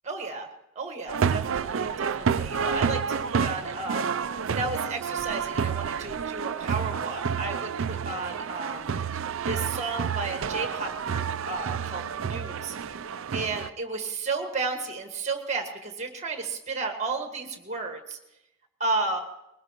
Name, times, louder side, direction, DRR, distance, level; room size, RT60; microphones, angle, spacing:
voice 1, 0.0-0.5 0.7-9.2 9.4-12.7 13.3-18.2 18.8-19.2, right 3 dB, 35° right, 5 dB, 1.7 m, -33 dB
sound 1, 1.1-13.7, right 6 dB, 65° right, 0.4 m, -29 dB
21.0 x 19.0 x 3.0 m, 0.87 s
head